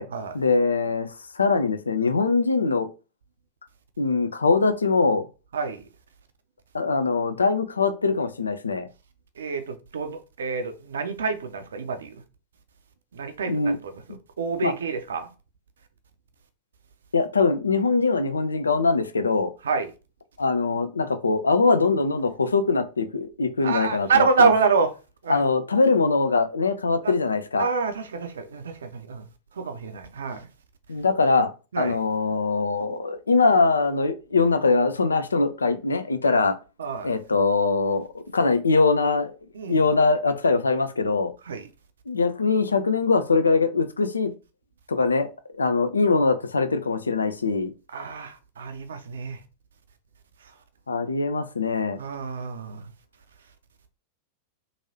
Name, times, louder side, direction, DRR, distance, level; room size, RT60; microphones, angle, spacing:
voice 1, 0.3-2.9 4.0-5.3 6.7-8.9 13.5-13.8 14.6-14.7 17.1-19.5 20.4-24.5 25.3-27.7 30.9-31.5 31.8-36.6 37.0-39.3 39.7-41.3 42.1-44.3 44.9-45.3 45.6-47.7 50.9-52.0, left 4 dB, 75° left, 0.4 m, -22 dB
voice 2, 5.5-5.9 9.4-12.2 13.1-14.0 14.4-15.3 19.6-19.9 23.6-24.9 25.2-25.4 27.0-27.1 27.6-29.3 29.5-30.5 31.7-32.0 36.8-37.1 39.5-39.9 41.5-41.7 47.9-49.4 50.4-50.5 52.0-52.9, right 4 dB, 65° right, 0.5 m, -27 dB
3.0 x 2.6 x 2.7 m
figure-of-eight pair, 90°, 0 cm